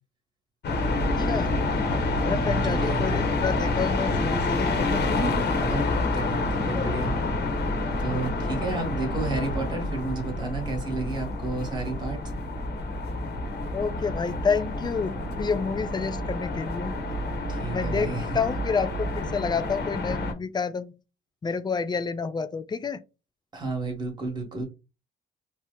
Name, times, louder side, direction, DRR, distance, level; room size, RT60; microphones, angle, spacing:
sound 1, 0.6-20.3, left 2 dB, 60° left, 0.9 m, -28 dB
voice 1, 1.2-1.5 2.3-5.2 6.7-6.9 13.7-16.9 17.7-20.9 21.4-23.0, left 5 dB, 20° left, 0.3 m, -29 dB
voice 2, 2.3-3.3 5.6-7.1 8.0-12.2 17.5-18.4 23.5-24.6, right 3 dB, 20° right, 1.1 m, -32 dB
2.9 x 2.0 x 3.5 m
cardioid pair, 90°, 20 cm